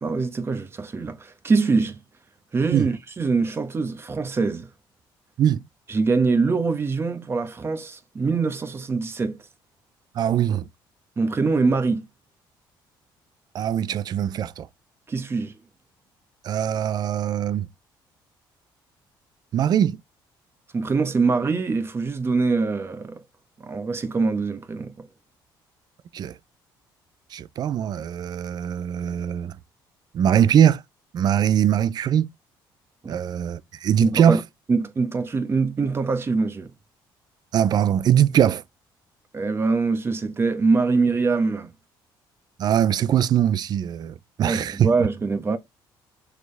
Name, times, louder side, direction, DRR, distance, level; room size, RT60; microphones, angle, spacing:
voice 1, 0.0-2.0 2.5-4.7 5.9-9.4 11.2-12.1 15.1-15.5 20.7-23.2 23.6-25.1 33.0-33.2 34.0-34.4 34.7-36.7 39.3-41.7 44.4-45.6, right 4 dB, 30° right, 1.3 m, -23 dB
voice 2, 10.1-10.7 13.5-14.7 16.4-17.7 19.5-20.0 26.1-26.4 27.3-29.6 30.1-30.8 31.1-32.3 33.1-34.4 37.5-38.6 42.6-44.9, right 9 dB, 50° right, 0.6 m, -21 dB
6.5 x 4.8 x 3.4 m
cardioid pair, 115°, 9 cm